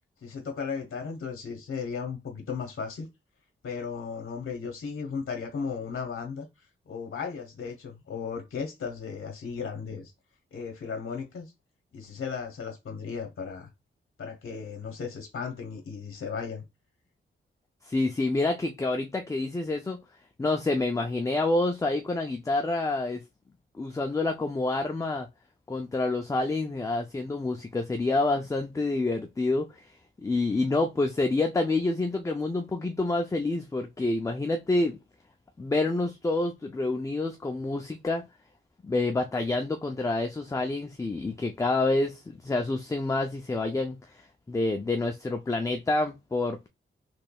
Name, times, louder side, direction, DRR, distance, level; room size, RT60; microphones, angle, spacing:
voice 1, 0.2-3.1 3.6-10.1 10.5-11.5 11.9-13.7 14.2-16.6, left 5 dB, 70° left, 0.9 m, -36 dB
voice 2, 17.9-20.0 20.4-23.2 23.8-25.3 25.7-29.9 30.2-35.0 35.6-38.2 38.8-44.2 44.5-46.7, left 2 dB, 15° left, 0.4 m, -28 dB
4.4 x 3.2 x 2.2 m
wide cardioid pair, 125°, 21 cm